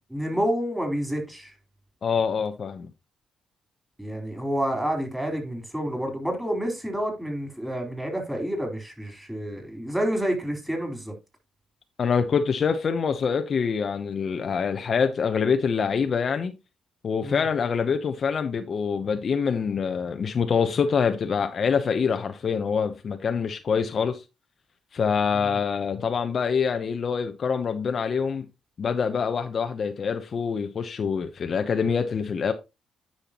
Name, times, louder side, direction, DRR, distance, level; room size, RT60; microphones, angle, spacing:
voice 1, 0.1-1.5 4.0-11.1 17.2-17.5 25.3-25.6, equal, 5° right, 3.9 m, -29 dB
voice 2, 2.0-2.9 12.0-16.5 17.0-24.2 24.9-28.5 28.8-32.5, left 6 dB, 50° left, 0.7 m, -25 dB
10.0 x 5.7 x 2.9 m
cardioid pair, 90°, 0 cm